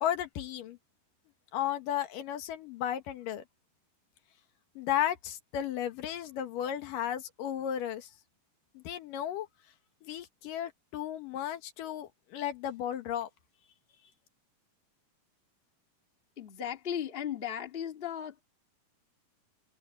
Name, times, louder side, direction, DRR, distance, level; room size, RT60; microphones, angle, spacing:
voice 1, 0.0-0.8 1.5-3.4 4.8-8.1 8.7-9.5 10.0-13.3, left 10 dB, 85° left, 3.1 m, -34 dB
voice 2, 16.4-18.4, left 9 dB, 25° left, 1.4 m, -36 dB
omnidirectional pair, 3.8 m